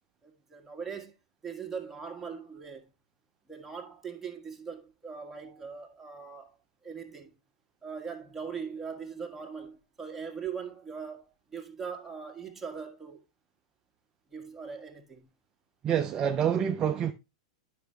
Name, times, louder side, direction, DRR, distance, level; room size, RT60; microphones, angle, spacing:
voice 1, 0.2-1.1 1.4-2.8 3.5-6.6 6.8-7.3 7.8-13.2 14.3-15.3, right 6 dB, 10° right, 1.8 m, -40 dB
voice 2, 15.8-17.1, right 8 dB, 30° right, 0.6 m, -27 dB
10.0 x 5.7 x 3.2 m
hypercardioid pair, 105°, 3 cm